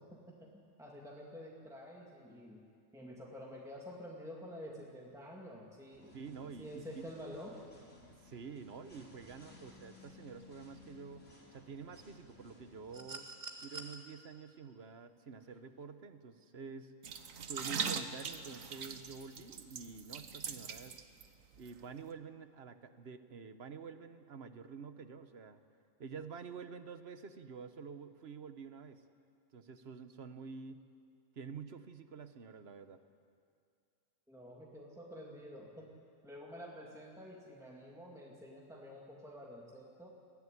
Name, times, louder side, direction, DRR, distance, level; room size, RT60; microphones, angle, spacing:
voice 1, 0.0-2.6 2.9-6.2 6.6-7.6 34.3-35.9 36.2-40.1, equal, ahead, -3 dB, 2.1 m, -49 dB
sound 1, 5.9-13.0, left 3 dB, 60° left, 5.2 m, -59 dB
voice 2, 6.1-7.0 8.2-13.3 13.6-16.9 17.5-21.1 21.6-25.6 26.0-29.0 29.5-30.8 31.4-33.0, right 5 dB, 55° right, 10 dB, 1.2 m, -48 dB
sound 2, 12.9-14.0 15.5-15.6, right 3 dB, 25° right, 2.0 m, -46 dB
sound 3, 17.0-21.3 21.6-21.7, right 6 dB, 85° right, 1.4 m, -41 dB
22.0 x 15.5 x 9.9 m, 2.3 s
omnidirectional pair, 1.4 m